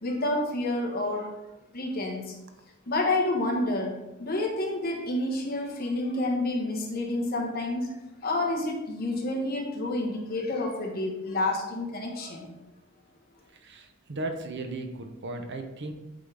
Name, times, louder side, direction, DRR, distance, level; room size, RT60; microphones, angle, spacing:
voice 1, 0.0-1.3 1.7-2.4 2.9-7.9 8.2-12.5, left 2 dB, 45° left, 0 dB, 1.2 m, -29 dB
voice 2, 13.6-15.9, right 2 dB, 55° right, 5 dB, 0.7 m, -36 dB
8.3 x 3.8 x 3.4 m, 0.96 s
head